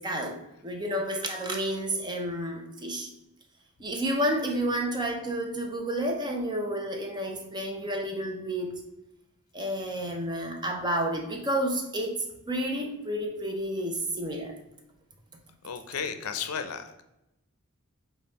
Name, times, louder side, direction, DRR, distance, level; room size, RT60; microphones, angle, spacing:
voice 1, 0.0-3.1 3.8-8.8 9.5-14.6, right 1 dB, 20° right, 3 dB, 0.7 m, -30 dB
voice 2, 15.6-17.0, left 6 dB, 80° left, 8 dB, 0.5 m, -34 dB
5.4 x 2.4 x 4.0 m, 0.89 s
head